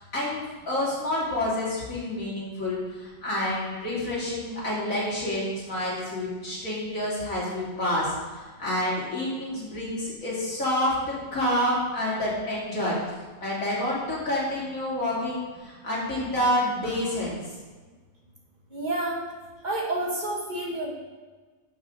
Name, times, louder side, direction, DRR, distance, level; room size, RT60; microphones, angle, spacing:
voice 1, 0.0-13.0 13.4-17.4, left 1 dB, 75° left, -7 dB, 3.5 m, -28 dB
voice 2, 18.7-19.2 19.6-20.9, right 2 dB, 35° right, -3 dB, 2.0 m, -29 dB
12.0 x 6.9 x 3.9 m, 1.3 s
omnidirectional pair, 1.4 m